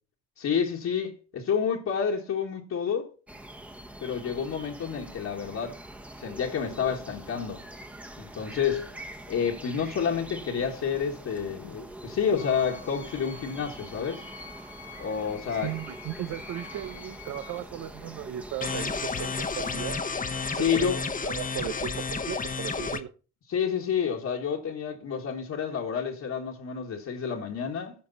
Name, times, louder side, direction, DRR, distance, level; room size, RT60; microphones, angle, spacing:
voice 1, 0.4-3.1 4.0-5.8 6.2-7.6 8.2-8.9 9.3-14.2 15.0-15.7 20.6-21.0 23.5-27.9, left 7 dB, 60° left, 1.7 m, -29 dB
sound 1, 3.3-19.7, right 1 dB, 5° right, 1.1 m, -44 dB
sound 2, 12.4-17.6, left 4 dB, 85° left, 2.3 m, -47 dB
voice 2, 15.5-20.0 20.5-23.1, right 12 dB, 75° right, 0.7 m, -36 dB
sound 3, 18.6-23.0, left 4 dB, 25° left, 1.0 m, -31 dB
15.0 x 5.3 x 4.1 m
cardioid pair, 90°, 30 cm